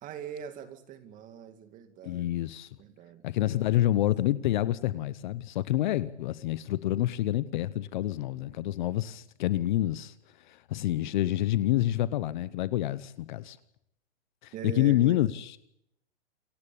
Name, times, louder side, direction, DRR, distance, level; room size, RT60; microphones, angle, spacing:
voice 1, 0.0-2.4 2.8-3.7 14.5-15.2, right 8 dB, 25° right, 2.3 m, -42 dB
voice 2, 2.0-2.7 3.2-10.1 10.4-13.6 14.4-15.5, left 14 dB, 45° left, 0.9 m, -28 dB
28.0 x 14.0 x 8.6 m
hypercardioid pair, 145°, 34 cm